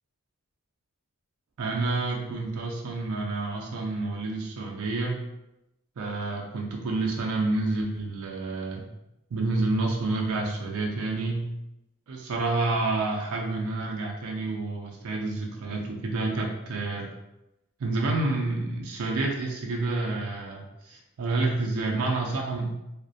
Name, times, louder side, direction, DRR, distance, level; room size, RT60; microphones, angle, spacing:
voice 1, 1.6-5.2 6.0-8.9 9.3-11.5 12.1-17.1 17.8-22.8, right 2 dB, 80° right, -1 dB, 0.4 m, -29 dB
2.4 x 2.1 x 2.6 m, 0.91 s
head